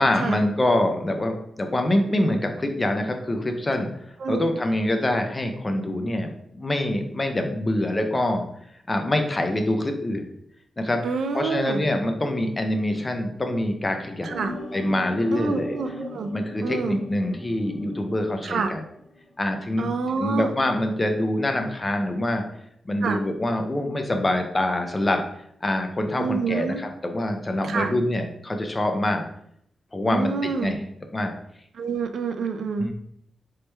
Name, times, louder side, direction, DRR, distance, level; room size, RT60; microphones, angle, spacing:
voice 1, 0.0-3.9 4.3-8.4 8.9-10.3 10.8-11.0 11.3-14.3 14.7-15.8 16.3-18.8 19.4-19.9 20.2-22.4 22.8-25.2 25.6-29.2 29.9-30.8 31.1-31.3 32.8-32.9, left 1 dB, 20° left, 5 dB, 0.4 m, -25 dB
voice 2, 11.0-11.8 14.2-14.5 15.3-16.3 16.6-17.0 18.4-18.7 19.8-20.5 23.0-23.2 26.2-26.8 27.7-27.9 30.1-30.8 31.8-32.9, right 5 dB, 65° right, 7 dB, 0.4 m, -27 dB
sound 1, 14.3-19.5 19.8-20.2, left 1 dB, 55° left, 1.1 m, -39 dB
3.1 x 3.0 x 3.3 m, 0.72 s
wide cardioid pair, 170°, 0 cm